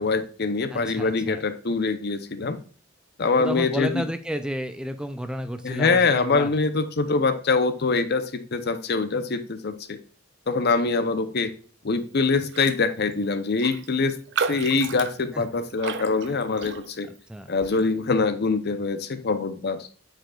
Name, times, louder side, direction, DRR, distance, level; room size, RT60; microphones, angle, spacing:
voice 1, 0.0-2.6 3.2-4.0 5.6-10.0 10.5-11.5 11.8-14.1 14.5-17.1 17.5-19.9, left 4 dB, 55° left, 11 dB, 0.7 m, -24 dB
voice 2, 0.7-1.4 3.4-6.5 15.3-15.4 17.3-17.5, equal, 5° right, 9 dB, 0.4 m, -31 dB
Raindrop, 12.5-12.8 13.1-13.2 13.6-17.2 17.6-17.9, right 6 dB, 60° right, 0.5 m, -33 dB
8.8 x 5.0 x 2.4 m, 0.41 s
head